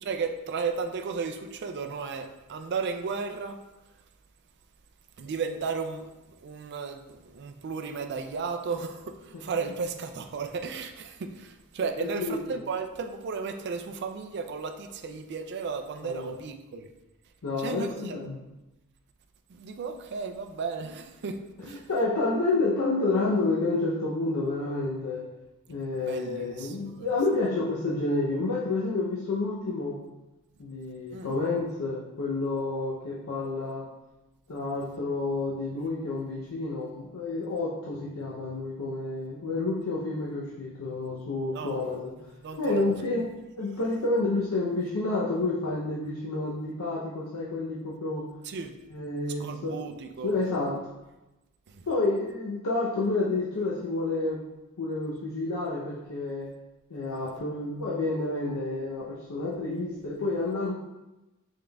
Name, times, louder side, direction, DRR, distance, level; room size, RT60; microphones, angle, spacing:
voice 1, 0.0-3.6 5.2-16.9 17.6-18.2 19.5-21.9 26.0-27.1 31.1-31.4 41.5-41.8 42.4-42.9 48.4-48.7 49.4-50.4 51.7-51.9, right 5 dB, 50° right, 6 dB, 0.4 m, -34 dB
voice 2, 12.0-12.6 16.0-16.4 17.4-18.4 21.6-25.2 25.7-30.0 30.6-33.9 34.5-42.1 42.6-43.3 43.6-48.3 48.9-49.8 50.2-50.7 51.9-54.4 54.8-56.5 56.9-60.7, left 2 dB, 80° left, -5 dB, 0.6 m, -29 dB
5.2 x 3.6 x 2.3 m, 1.0 s
head